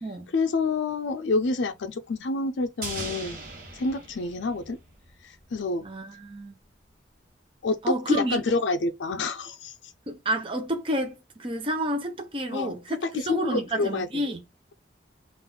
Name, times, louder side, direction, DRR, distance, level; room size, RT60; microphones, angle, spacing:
voice 1, 0.3-3.4 3.7-4.8 5.2-5.8 7.6-9.7 12.5-12.8 13.0-14.1, left 3 dB, 75° left, 0.4 m, -28 dB
sound 1, 2.8-5.2 5.5-5.6, right 3 dB, 50° right, 1.3 m, -38 dB
voice 2, 5.8-6.6 7.8-8.4 10.1-14.4, equal, 30° right, 0.7 m, -30 dB
3.9 x 2.4 x 3.7 m
head